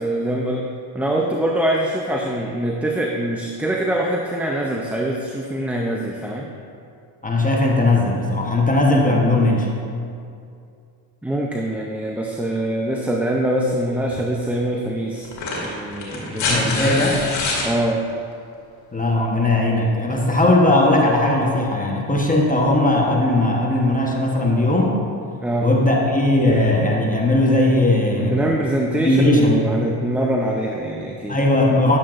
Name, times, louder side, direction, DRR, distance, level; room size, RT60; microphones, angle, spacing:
voice 1, 0.0-6.5 11.2-17.2 17.6-18.0 25.4-25.7 28.2-31.4, right 1 dB, 5° right, 0 dB, 0.6 m, -24 dB
voice 2, 7.2-9.7 16.3-17.2 18.9-25.0 25.6-28.4 29.0-29.6 31.3-32.0, left 2 dB, 15° left, -1 dB, 1.1 m, -18 dB
sound 1, 14.1-14.2 15.2-17.7 19.2-19.3, left 3 dB, 85° left, 1.8 m, -25 dB
11.0 x 7.1 x 2.6 m, 2.4 s
supercardioid pair, 65°, 47 cm